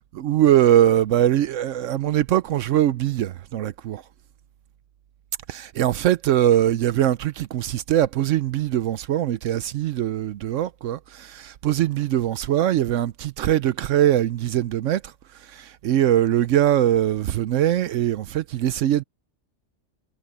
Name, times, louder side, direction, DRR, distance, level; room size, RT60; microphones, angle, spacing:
voice 1, 0.1-4.0 5.5-15.1 15.4-19.0, right 12 dB, 80° right, 1.0 m, -22 dB
omnidirectional pair, 1.3 m